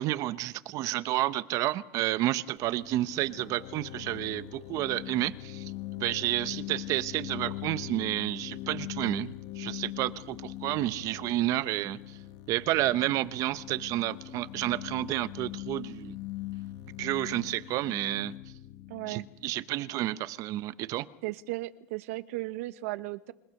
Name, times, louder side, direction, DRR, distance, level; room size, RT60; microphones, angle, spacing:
voice 1, 0.0-5.7 6.0-12.0 12.5-16.2 17.0-18.3 19.1-21.1, right 15 dB, 45° right, 16 dB, 0.9 m, -30 dB
sound 1, 2.6-20.2, left 15 dB, 50° left, 1.1 m, -42 dB
voice 2, 18.9-19.3 21.2-23.3, right 19 dB, 75° right, 13 dB, 1.1 m, -36 dB
29.5 x 19.0 x 6.5 m, 0.90 s
supercardioid pair, 145°, 8 cm